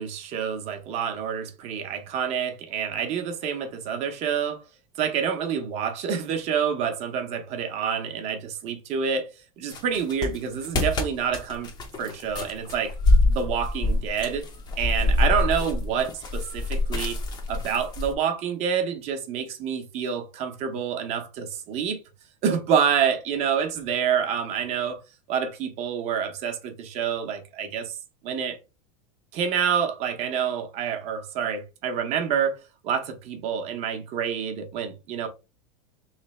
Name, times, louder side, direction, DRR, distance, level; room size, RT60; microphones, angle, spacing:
voice 1, 0.0-4.6 5.0-9.3 9.6-11.7 12.0-12.9 13.3-14.4 14.8-17.2 17.5-22.0 22.4-25.0 25.3-28.0 28.2-28.6 29.3-35.3, right 7 dB, 35° right, 0.8 m, -27 dB
sound 1, 9.7-18.1, left 2 dB, 25° left, 0.6 m, -25 dB
3.3 x 3.2 x 3.1 m
supercardioid pair, 150°, 18 cm